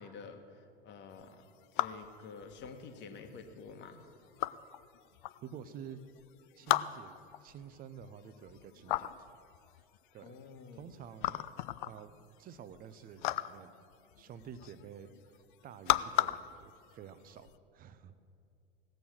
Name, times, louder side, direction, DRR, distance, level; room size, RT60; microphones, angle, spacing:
voice 1, 0.0-1.4 1.7-4.0 10.2-10.8, left 5 dB, 40° left, 6 dB, 1.3 m, -49 dB
sound 1, 1.2-17.6, left 15 dB, 55° left, 0.4 m, -37 dB
voice 2, 5.4-6.0 6.6-7.2 7.4-9.4 10.1-10.4 10.7-11.4 11.9-12.1 12.4-13.7 14.2-18.1, right 8 dB, 30° right, 13 dB, 0.7 m, -50 dB
17.0 x 6.9 x 6.3 m, 2.5 s
figure-of-eight pair, 80°, 30 cm